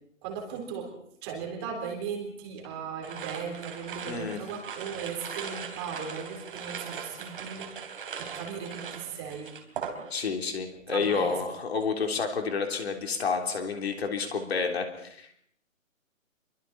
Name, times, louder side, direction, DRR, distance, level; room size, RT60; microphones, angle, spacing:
voice 1, 0.2-0.9 1.2-7.8 8.2-9.5 10.9-11.4, right 6 dB, 20° right, 0 dB, 3.7 m, -37 dB
sound 1, 3.0-10.4 10.7-11.2, right 6 dB, 40° right, 3.2 m, -40 dB
voice 2, 4.1-4.4 10.1-15.3, left 5 dB, 50° left, 4 dB, 3.5 m, -30 dB
28.0 x 23.5 x 4.3 m, 0.68 s
hypercardioid pair, 165°, 41 cm